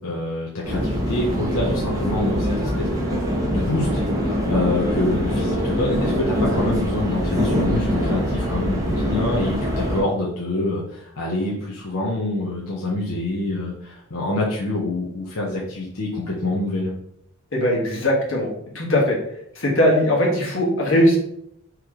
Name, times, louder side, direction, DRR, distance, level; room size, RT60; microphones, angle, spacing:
voice 1, 0.0-3.1 3.5-4.0 4.5-16.9, left 2 dB, 80° left, -4 dB, 0.8 m, -26 dB
sound 1, 0.6-10.0, equal, 15° right, 1.0 m, -23 dB
voice 2, 17.5-19.2 19.5-21.2, left 1 dB, 60° left, -3 dB, 1.4 m, -19 dB
4.6 x 3.2 x 3.7 m, 0.76 s
head